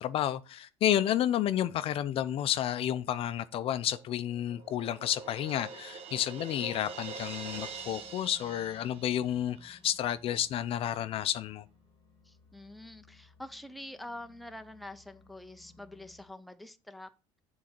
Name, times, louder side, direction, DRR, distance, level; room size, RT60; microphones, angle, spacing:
voice 1, 0.0-11.6, left 11 dB, 50° left, 0.5 m, -31 dB
sound 1, 3.1-16.3, left 3 dB, 35° left, 1.4 m, -63 dB
Crash cymbal, 3.9-9.7, right 5 dB, 50° right, 1.5 m, -45 dB
voice 2, 12.2-17.1, left 1 dB, ahead, 0.6 m, -46 dB
7.5 x 4.0 x 5.8 m
cardioid pair, 130°, 12 cm